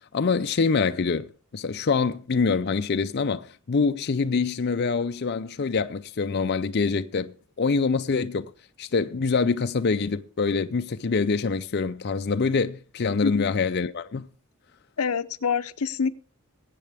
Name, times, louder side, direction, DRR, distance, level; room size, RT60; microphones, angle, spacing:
voice 1, 0.1-7.3 7.6-8.5 8.8-14.3, left 4 dB, 50° left, 0.5 m, -25 dB
voice 2, 15.0-16.1, left 5 dB, 85° left, 0.7 m, -26 dB
21.0 x 8.5 x 3.4 m
head